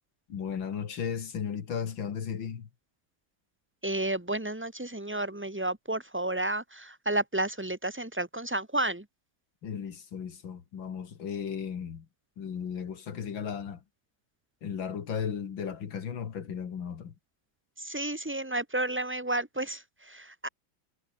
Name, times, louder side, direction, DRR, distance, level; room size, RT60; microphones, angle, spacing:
voice 1, 0.3-2.7 9.6-12.1 12.4-13.8 14.6-17.1, left 7 dB, 75° left, 2.5 m, -35 dB
voice 2, 3.8-9.0 17.8-20.5, right 1 dB, 5° right, 1.8 m, -31 dB
omnidirectional pair, 2.1 m